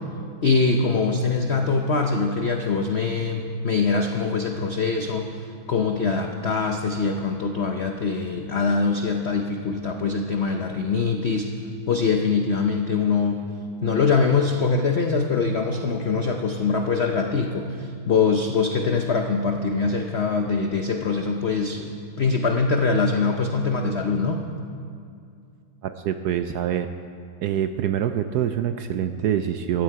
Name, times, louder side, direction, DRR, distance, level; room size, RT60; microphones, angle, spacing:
voice 1, 0.4-11.5 11.9-13.4 13.8-24.4, left 4 dB, 75° left, 4 dB, 0.5 m, -23 dB
voice 2, 25.8-26.9 27.4-29.8, right 10 dB, 75° right, 9 dB, 0.9 m, -25 dB
14.5 x 14.5 x 4.6 m, 2.3 s
omnidirectional pair, 2.1 m